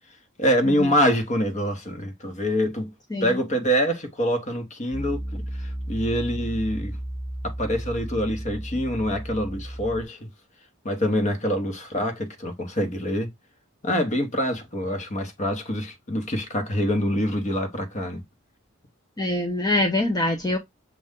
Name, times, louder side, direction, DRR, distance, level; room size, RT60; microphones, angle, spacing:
voice 1, 0.4-2.9 3.2-7.0 7.4-10.3 10.8-13.3 13.8-18.2, equal, 35° left, 0.9 m, -25 dB
Piano, 4.9-10.0, right 1 dB, 20° right, 0.9 m, -33 dB
voice 2, 19.2-20.6, left 1 dB, 15° left, 0.5 m, -24 dB
6.4 x 2.3 x 3.6 m
head